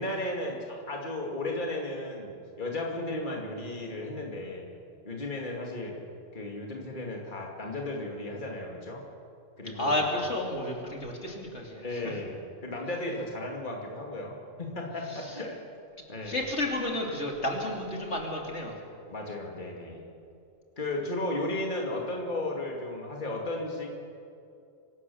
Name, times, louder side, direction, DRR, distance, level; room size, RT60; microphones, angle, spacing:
voice 1, 0.0-4.7 5.0-6.0 6.3-9.0 9.6-10.0 11.8-14.3 14.6-15.6 16.1-16.4 19.1-20.1 20.8-24.0, left 2 dB, 40° left, -1 dB, 2.7 m, -34 dB
voice 2, 9.7-12.1 15.1-15.3 16.2-18.8, left 1 dB, 60° left, 0 dB, 3.0 m, -31 dB
25.0 x 17.0 x 7.0 m, 2.5 s
omnidirectional pair, 1.3 m